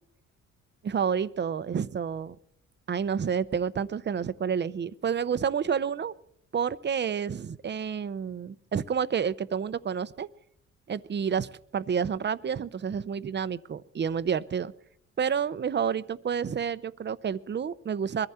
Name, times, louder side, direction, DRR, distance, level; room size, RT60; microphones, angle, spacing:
voice 1, 0.8-2.4 2.9-6.1 6.5-10.3 10.9-14.7 15.2-18.3, right 7 dB, 35° right, 15 dB, 0.7 m, -29 dB
22.0 x 14.5 x 4.4 m, 0.69 s
cardioid pair, 90°, 30 cm